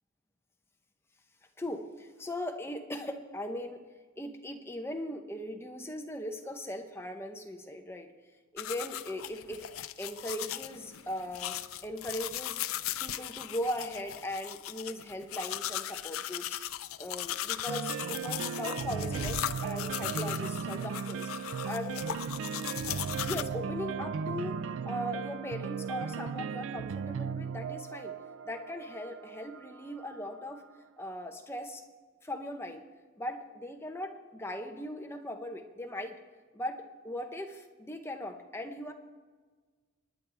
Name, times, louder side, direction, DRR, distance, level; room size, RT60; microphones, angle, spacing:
voice 1, 1.6-3.8 4.2-8.1 8.5-9.6 10.0-12.6 13.0-16.6 17.0-21.3 21.7-22.2 23.2-28.1 28.4-30.6 31.0-31.8 32.2-32.8 33.2-36.2 36.5-38.9, left 1 dB, 10° left, 4 dB, 0.8 m, -39 dB
sound 1, 8.6-23.4, left 11 dB, 80° left, 0.5 m, -38 dB
sound 2, 17.7-30.6, right 6 dB, 65° right, 0.3 m, -37 dB
28.5 x 9.5 x 3.4 m, 1.4 s
head